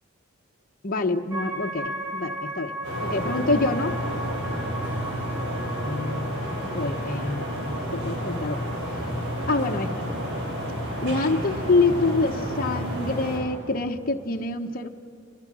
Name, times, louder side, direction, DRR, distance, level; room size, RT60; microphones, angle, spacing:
voice 1, 0.8-4.0 5.8-8.7 9.5-10.1 11.0-14.9, left 3 dB, 45° left, 2 dB, 0.9 m, -26 dB
sound 1, 1.3-11.8, right 1 dB, 10° right, 1.6 m, -38 dB
sound 2, 2.8-13.4, equal, 55° right, 6.8 m, -30 dB
30.0 x 22.0 x 6.2 m, 2.5 s
head